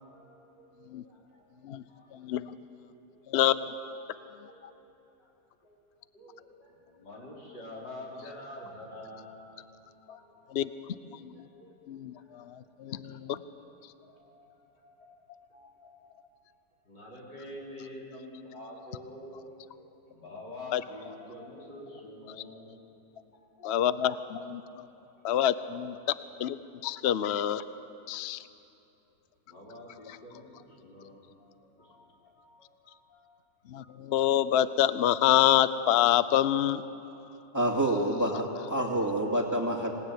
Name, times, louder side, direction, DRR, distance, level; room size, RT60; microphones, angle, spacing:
voice 1, 0.1-2.5 3.1-3.3 3.9-5.3 5.6-5.8 6.1-9.6 10.0-12.5 12.8-13.3 13.6-13.8 14.0-16.1 16.8-22.8 23.3-23.7 24.8-25.0 26.9-27.0 29.5-33.3 33.8-34.0, left 1 dB, 80° left, -4 dB, 5.5 m, -48 dB
voice 2, 2.1-2.5 3.3-3.7 10.1-10.2 10.5-10.7 11.1-11.3 11.9-13.4 20.7-20.8 23.6-24.9 25.2-26.0 26.4-27.6 28.1-28.4 33.7-36.8, left 11 dB, 65° left, 14 dB, 0.6 m, -27 dB
voice 3, 37.5-39.9, right 1 dB, 10° right, 0 dB, 2.4 m, -28 dB
26.0 x 18.0 x 9.5 m, 3.0 s
omnidirectional pair, 1.9 m